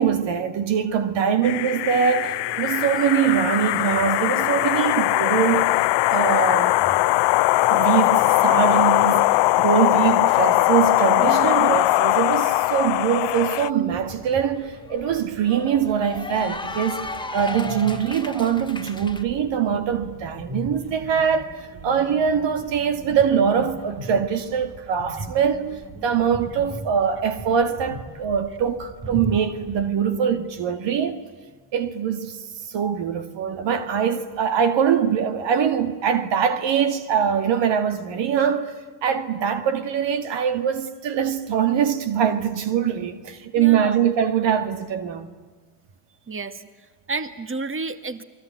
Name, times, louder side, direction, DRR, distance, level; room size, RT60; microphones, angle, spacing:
voice 1, 0.0-5.7 6.1-6.8 7.7-31.2 31.7-32.4 32.7-38.7 39.0-45.3, right 8 dB, 65° right, 2.1 m, -23 dB
sound 1, 1.4-13.7, left 19 dB, 65° left, 0.7 m, -20 dB
voice 2, 11.2-11.6 43.6-44.0 46.3-46.6 47.1-48.2, right 3 dB, 25° right, 2.2 m, -30 dB
Cheering / Applause, 13.4-13.5 13.8-19.2, left 2 dB, 10° left, 1.8 m, -35 dB
sound 2, 13.9-29.9, right 2 dB, 45° right, 3.0 m, -39 dB
28.5 x 21.5 x 9.3 m
hypercardioid pair, 55°, 46 cm